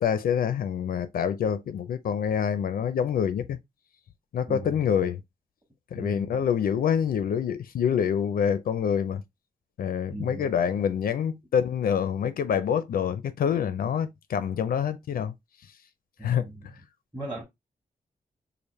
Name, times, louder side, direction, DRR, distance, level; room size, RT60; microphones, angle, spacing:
voice 1, 0.0-3.6 4.3-5.2 5.9-9.2 9.8-15.3 16.2-16.5, left 8 dB, 75° left, 0.5 m, -26 dB
voice 2, 5.9-6.3 10.1-10.6 16.2-16.7 17.1-17.4, right 1 dB, 15° right, 1.0 m, -37 dB
4.9 x 2.5 x 3.1 m
wide cardioid pair, 180°, 15 cm